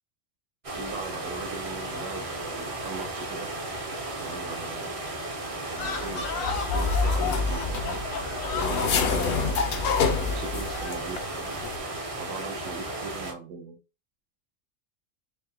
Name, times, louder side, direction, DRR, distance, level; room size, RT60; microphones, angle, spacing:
sound 1, 0.6-13.3, right 2 dB, 40° right, 0.5 m, -35 dB
voice 1, 0.7-3.5 4.2-4.9 5.5-8.1 8.5-9.6 10.2-11.5 12.2-13.8, right 4 dB, 80° right, 1.1 m, -40 dB
sound 2, 5.7-11.1, left 6 dB, 90° left, 1.1 m, -35 dB
sound 3, 5.8-11.2 11.5-11.8, left 4 dB, 60° left, 0.7 m, -28 dB
4.4 x 2.1 x 3.3 m
omnidirectional pair, 1.3 m